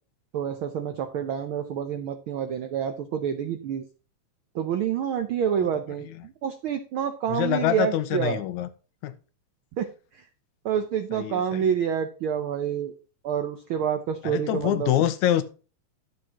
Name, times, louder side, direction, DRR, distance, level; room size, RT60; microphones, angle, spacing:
voice 1, 0.3-3.8 4.5-8.4 9.7-9.9 10.1-10.2 10.6-12.9 13.2-14.9, right 8 dB, 85° right, 1.1 m, -28 dB
voice 2, 7.3-8.7 9.0-9.1 11.1-11.7 14.2-15.4, left 12 dB, 80° left, 2.1 m, -25 dB
12.0 x 7.4 x 2.9 m
omnidirectional pair, 3.4 m